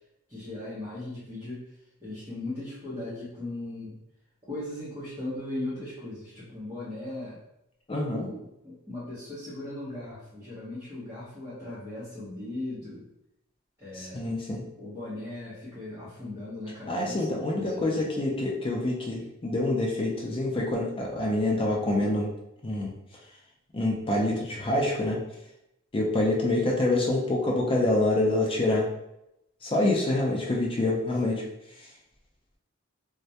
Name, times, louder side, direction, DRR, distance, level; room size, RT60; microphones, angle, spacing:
voice 1, 0.3-1.6 2.0-4.0 4.5-7.4 8.0-13.1 13.8-14.4 14.8-18.1 31.1-31.5, left 2 dB, 15° right, -11 dB, 0.7 m, -38 dB
voice 2, 7.9-8.3 14.0-14.6 16.9-22.3 22.6-22.9 23.7-25.2 25.9-28.9 29.6-31.4, left 2 dB, 25° left, -2 dB, 0.4 m, -26 dB
2.2 x 2.1 x 2.7 m, 0.84 s
head